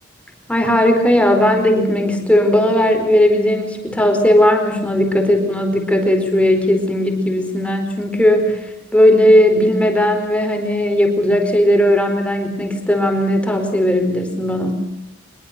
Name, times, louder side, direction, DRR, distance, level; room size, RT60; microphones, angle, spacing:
voice 1, 0.5-8.6 8.9-14.8, left 1 dB, 5° left, 4 dB, 4.5 m, -16 dB
24.5 x 22.5 x 6.8 m, 0.84 s
head